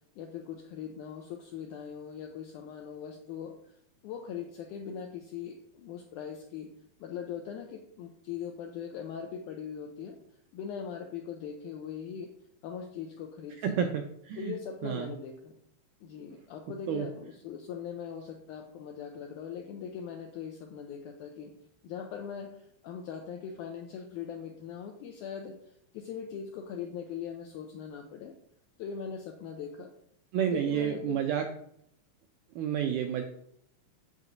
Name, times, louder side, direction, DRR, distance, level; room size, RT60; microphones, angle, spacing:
voice 1, 0.2-3.6 4.0-6.7 7.0-10.2 10.5-12.3 12.6-13.9 14.4-15.5 16.0-21.5 21.8-25.5 25.9-28.3 28.8-29.9 30.4-31.3, left 7 dB, 85° left, 4 dB, 1.8 m, -40 dB
voice 2, 13.6-14.5 14.8-15.1 16.9-17.1 30.3-31.5 32.6-33.2, right 8 dB, 90° right, 5 dB, 1.8 m, -30 dB
7.8 x 7.3 x 2.6 m, 0.71 s
omnidirectional pair, 4.2 m